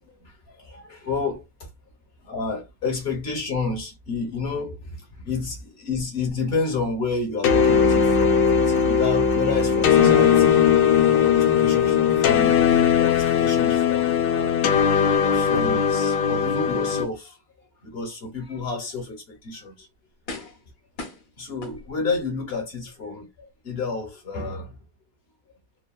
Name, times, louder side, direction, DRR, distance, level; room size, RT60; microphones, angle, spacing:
voice 1, 0.0-1.7 2.2-10.7 11.1-14.7 15.1-19.9 20.3-20.6 21.4-24.8, left 4 dB, 45° left, 0.9 m, -31 dB
sound 1, 7.4-17.0, left 8 dB, 85° left, 1.3 m, -19 dB
Acoustic guitar, 10.0-15.2, right 5 dB, 65° right, 1.0 m, -33 dB
sound 2, 19.3-19.5 20.3-20.7 21.0-22.2 22.8-22.9, left 3 dB, 65° left, 1.3 m, -38 dB
3.3 x 2.2 x 2.3 m
omnidirectional pair, 1.9 m